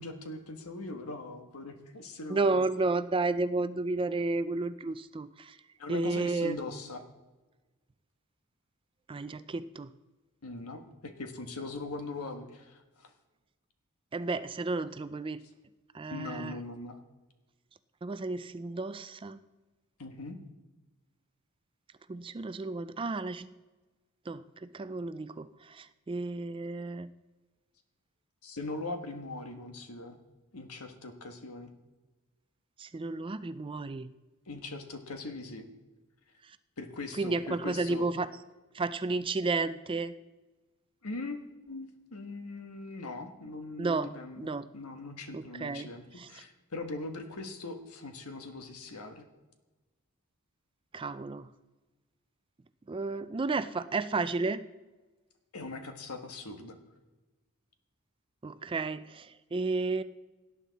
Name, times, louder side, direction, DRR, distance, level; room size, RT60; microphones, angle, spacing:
voice 1, 0.0-2.7 5.8-7.0 10.4-13.1 16.1-17.0 20.0-20.4 28.4-30.2 30.5-31.7 34.5-35.6 36.8-38.1 41.0-49.2 55.5-56.8, left 2 dB, 80° left, 6 dB, 1.4 m, -41 dB
voice 2, 2.3-5.6 5.9-6.6 9.1-9.9 14.1-15.4 15.9-16.6 18.0-19.4 22.1-23.5 24.3-27.1 32.8-34.1 36.4-36.6 37.2-38.3 38.7-40.2 43.8-44.7 45.3-45.9 46.2-46.3 50.9-51.5 52.9-54.7 58.4-60.0, right 3 dB, 25° right, 13 dB, 0.4 m, -32 dB
17.5 x 10.0 x 4.1 m, 1.2 s
head